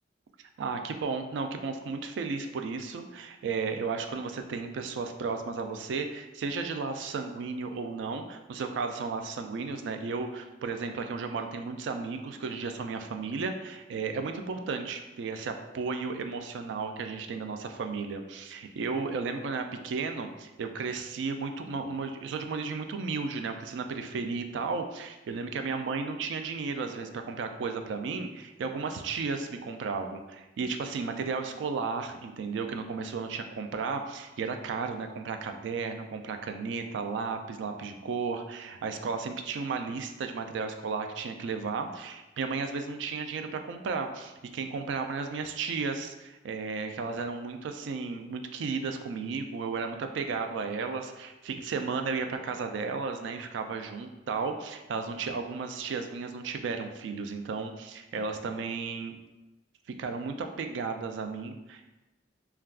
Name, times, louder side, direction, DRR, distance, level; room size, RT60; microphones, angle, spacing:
voice 1, 0.6-59.2 59.9-61.9, right 4 dB, 75° right, 6 dB, 0.3 m, -34 dB
2.3 x 2.3 x 3.4 m, 1.0 s
head